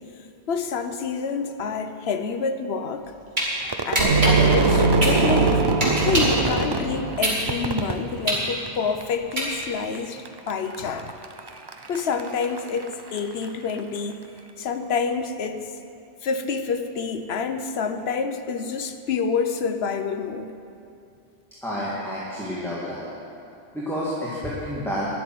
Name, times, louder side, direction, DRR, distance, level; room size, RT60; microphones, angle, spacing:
voice 1, 0.5-3.1 3.8-5.6 6.0-11.1 11.9-14.2 14.6-15.7 16.2-20.5, left 5 dB, 75° left, 8 dB, 1.0 m, -28 dB
sound 1, 2.9-3.5 3.9-6.4 6.8-9.9, right 1 dB, 45° right, 2.7 m, -25 dB
Crowd / Fireworks, 3.6-9.0 9.3-10.0 10.3-13.8, right 3 dB, 30° right, 0.5 m, -27 dB
sound 2, 4.0-7.8, right 4 dB, 75° right, 1.1 m, -23 dB
voice 2, 21.6-23.1 23.7-25.1, equal, ahead, -8 dB, 2.0 m, -29 dB
12.0 x 7.1 x 9.3 m, 2.6 s
omnidirectional pair, 1.1 m